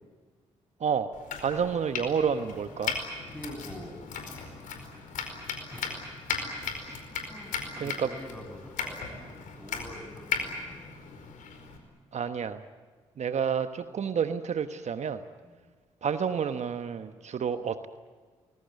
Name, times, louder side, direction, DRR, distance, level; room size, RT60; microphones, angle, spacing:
Domestic sounds home sounds, 1.1-11.8, left 5 dB, 70° left, 4.8 m, -37 dB
voice 1, 1.4-2.9 6.8-6.9 7.8-8.1 12.1-12.6 13.2-15.2 16.0-17.9, right 7 dB, 55° right, 9 dB, 1.2 m, -29 dB
voice 2, 3.3-4.0 5.7-6.1 6.6-6.7 7.1-11.2 15.4-15.6, equal, 5° left, 6 dB, 7.3 m, -46 dB
25.0 x 21.5 x 9.5 m, 1.5 s
hypercardioid pair, 45°, 14 cm